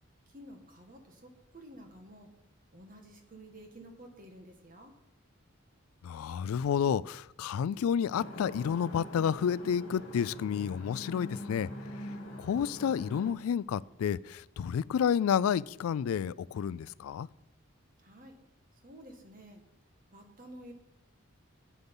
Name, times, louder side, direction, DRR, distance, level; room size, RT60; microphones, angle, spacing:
voice 1, 0.3-2.3 2.7-4.9 18.0-18.4 18.8-19.6 20.1-20.7, right 1 dB, 40° right, 1.6 m, -51 dB
voice 2, 6.0-11.7 11.9-17.3, left 8 dB, 85° left, 0.3 m, -30 dB
sound 1, 8.1-13.3, left 1 dB, 65° left, 2.2 m, -43 dB
9.4 x 7.9 x 5.4 m
head